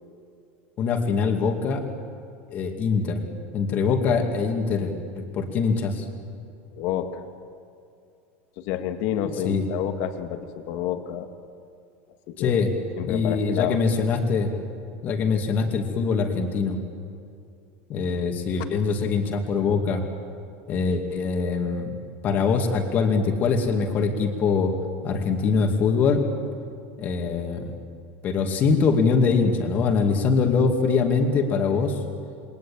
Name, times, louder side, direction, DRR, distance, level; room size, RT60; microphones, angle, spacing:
voice 1, 0.8-1.8 2.5-3.2 3.5-6.0 9.4-9.7 12.4-12.7 13.1-14.5 15.0-16.8 17.9-20.0 20.7-22.0 22.2-24.7 25.0-26.2 27.0-27.7 28.2-32.0, left 5 dB, 25° left, 4 dB, 2.4 m, -23 dB
voice 2, 6.8-7.2 8.6-11.3 12.3-12.6 13.0-13.8 18.6-18.7, left 10 dB, 45° left, 7 dB, 1.8 m, -29 dB
28.0 x 23.5 x 8.9 m, 2.5 s
supercardioid pair, 180°, 6 cm